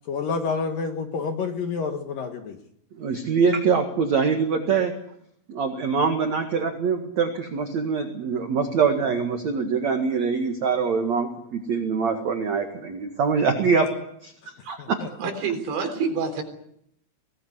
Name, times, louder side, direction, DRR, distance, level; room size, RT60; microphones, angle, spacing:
voice 1, 0.1-2.6 14.8-15.1, left 5 dB, 60° left, 6 dB, 2.6 m, -28 dB
voice 2, 3.0-4.9 5.5-13.9 14.2-14.3 14.7-14.8, right 5 dB, 50° right, 5 dB, 2.4 m, -24 dB
voice 3, 15.2-16.4, right 5 dB, 70° right, 5 dB, 6.0 m, -27 dB
23.5 x 18.5 x 9.7 m, 0.73 s
omnidirectional pair, 5.4 m